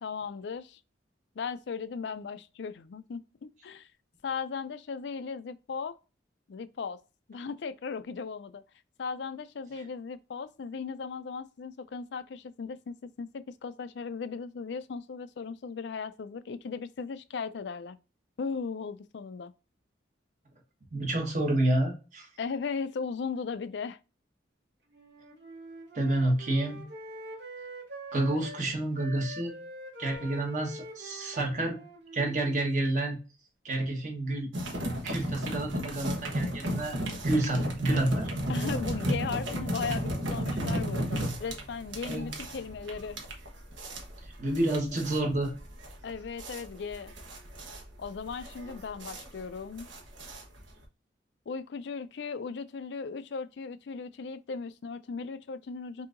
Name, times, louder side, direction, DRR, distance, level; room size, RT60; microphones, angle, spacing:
voice 1, 0.0-0.8 1.4-3.9 4.2-6.0 6.5-7.0 7.3-8.6 9.0-18.0 18.4-19.5 22.4-24.0 38.5-43.2 46.0-47.1 48.0-49.9 51.5-56.1, left 5 dB, 70° left, 0.4 m, -37 dB
voice 2, 20.9-22.3 25.9-26.9 28.1-29.5 30.0-31.8 32.1-33.2 33.6-34.5 35.0-37.0 37.2-38.3 42.0-42.3 44.2-45.5, right 1 dB, 40° right, 1.2 m, -29 dB
Wind instrument woodwind instrument, 24.9-28.7 28.9-33.1, right 1 dB, 65° right, 1.2 m, -45 dB
sound 1, 34.5-50.8, right 1 dB, 85° right, 1.1 m, -34 dB
5.6 x 2.7 x 2.5 m
head